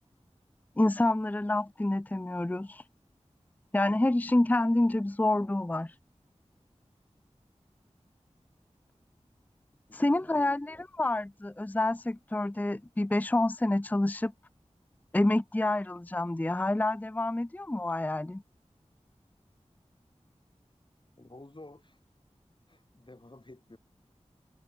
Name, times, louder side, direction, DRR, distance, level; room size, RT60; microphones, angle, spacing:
voice 1, 0.8-2.8 3.7-5.9 9.9-14.3 15.1-18.4, left 2 dB, 15° left, 0.5 m, -28 dB
voice 2, 9.9-10.5 21.2-22.0 22.7-23.8, left 2 dB, 40° left, 7.9 m, -51 dB
wide cardioid pair, 50°, 12 cm